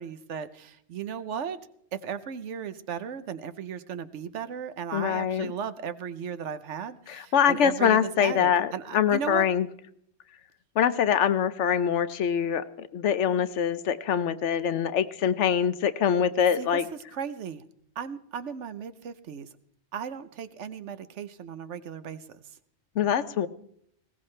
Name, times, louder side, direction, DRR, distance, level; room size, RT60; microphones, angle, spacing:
voice 1, 0.0-1.6 1.9-9.5 16.6-16.8 17.1-17.6 18.0-19.5 19.9-22.2, right 7 dB, 85° right, 13 dB, 1.1 m, -36 dB
voice 2, 4.9-5.5 7.1-9.7 10.8-16.9 23.0-23.5, left 8 dB, 85° left, 13 dB, 1.1 m, -24 dB
20.0 x 17.0 x 3.3 m, 0.67 s
omnidirectional pair, 1.2 m